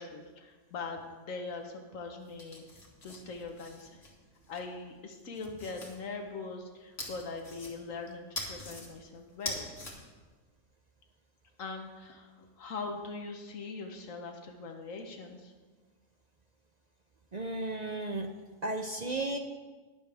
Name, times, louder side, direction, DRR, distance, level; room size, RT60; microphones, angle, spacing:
voice 1, 0.0-4.1 4.5-9.7 11.6-15.5, left 4 dB, 80° left, 3 dB, 1.4 m, -42 dB
sound 1, 2.2-4.6 5.1-6.0 7.0-8.0 8.3-8.9 9.3-9.9, left 1 dB, 55° left, 2.3 m, -42 dB
voice 2, 17.3-18.3 18.6-19.4, right 2 dB, 40° right, 5 dB, 0.6 m, -34 dB
20.5 x 7.3 x 3.4 m, 1.3 s
omnidirectional pair, 1.4 m